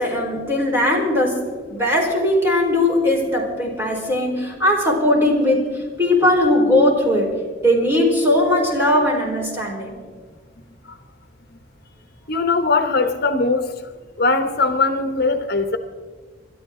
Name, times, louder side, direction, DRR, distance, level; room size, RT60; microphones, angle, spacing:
voice 1, 0.0-1.4 1.7-5.7 6.0-7.4 7.6-10.0, left 1 dB, 15° right, -2 dB, 4.3 m, -19 dB
voice 2, 12.3-13.7 14.2-15.8, left 3 dB, 55° left, 8 dB, 1.0 m, -20 dB
30.0 x 12.5 x 3.7 m, 1.5 s
head